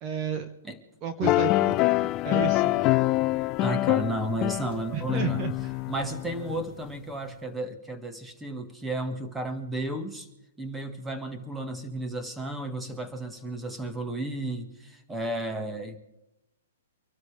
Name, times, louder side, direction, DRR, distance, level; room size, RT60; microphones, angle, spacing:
voice 1, 0.0-0.5 1.0-2.7 4.9-5.8, right 8 dB, 30° right, 8 dB, 1.2 m, -32 dB
sound 1, 1.2-6.6, left 18 dB, 30° left, 0.5 m, -25 dB
voice 2, 3.6-5.4 5.9-10.3 10.6-16.0, right 1 dB, 5° right, 7 dB, 1.7 m, -33 dB
26.0 x 12.5 x 3.5 m, 0.91 s
hypercardioid pair, 150°, 0 cm